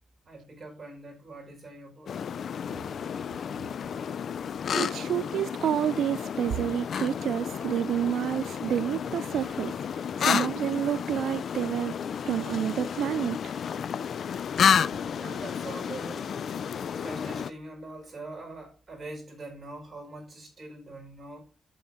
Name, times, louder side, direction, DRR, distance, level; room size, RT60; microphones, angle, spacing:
voice 1, 0.3-2.1 15.2-16.4 17.0-21.5, right 2 dB, 30° right, 4.9 m, -43 dB
sound 1, 2.1-17.5, left 7 dB, 60° left, 0.4 m, -31 dB
voice 2, 4.7-9.7 10.2-11.9 12.3-13.5, right 10 dB, 85° right, 0.3 m, -29 dB
11.0 x 7.9 x 2.7 m
cardioid pair, 135°, 0 cm